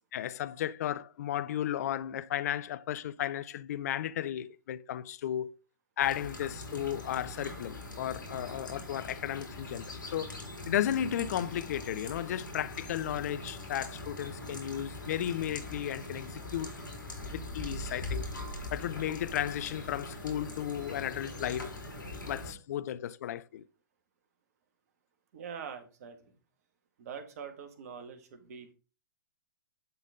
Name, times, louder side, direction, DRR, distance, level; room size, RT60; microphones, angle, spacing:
voice 1, 0.1-5.5 6.0-16.8 17.3-18.3 18.7-21.8 22.3-23.6, left 11 dB, 50° left, 0.5 m, -34 dB
sound 1, 6.0-22.5, left 2 dB, 80° left, 3.6 m, -42 dB
voice 2, 25.3-26.3 27.0-28.7, right 7 dB, 50° right, 1.8 m, -44 dB
10.5 x 4.0 x 5.0 m
figure-of-eight pair, 115°, 11 cm